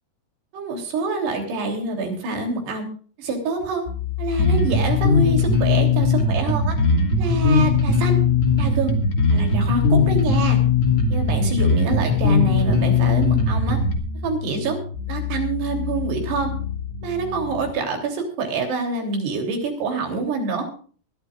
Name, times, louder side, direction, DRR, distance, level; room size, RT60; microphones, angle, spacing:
voice 1, 0.5-2.9 3.2-3.8 4.2-6.8 7.2-8.2 8.6-9.0 9.3-10.6 11.1-13.8 14.2-14.8 15.1-16.5 17.0-20.7, right 4 dB, 85° right, 3 dB, 5.4 m, -26 dB
sound 1, 3.9-17.7, left 7 dB, 75° left, 2.5 m, -31 dB
Bass guitar, 4.4-14.0, left 4 dB, 40° left, 2.5 m, -19 dB
21.5 x 13.0 x 2.5 m, 0.42 s
omnidirectional pair, 4.7 m